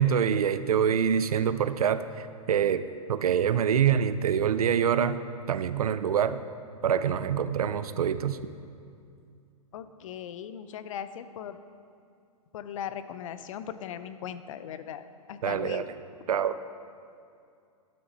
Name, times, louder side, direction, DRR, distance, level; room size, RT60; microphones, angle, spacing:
voice 1, 0.0-2.8 3.1-5.2 5.5-6.4 6.8-8.4 15.4-15.8 16.3-16.6, right 8 dB, 85° right, 13 dB, 0.5 m, -25 dB
voice 2, 9.7-11.6 12.5-15.0 15.3-15.9, left 9 dB, 60° left, 12 dB, 0.5 m, -38 dB
11.5 x 6.1 x 4.2 m, 2.4 s
hypercardioid pair, 115°, 19 cm